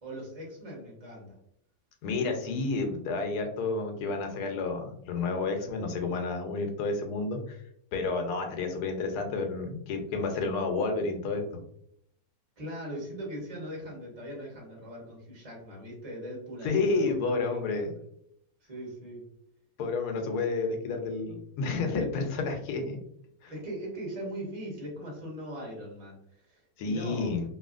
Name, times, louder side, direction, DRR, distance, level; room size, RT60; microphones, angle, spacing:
voice 1, 0.0-1.4 12.6-17.9 18.7-19.3 23.5-27.4, right 1 dB, 30° right, -3 dB, 0.9 m, -40 dB
voice 2, 2.0-7.6 7.9-11.4 16.6-17.9 19.8-23.0 23.4-23.5 26.8-27.4, left 3 dB, 90° left, 4 dB, 1.2 m, -30 dB
2.8 x 2.7 x 2.4 m, 0.70 s
omnidirectional pair, 1.6 m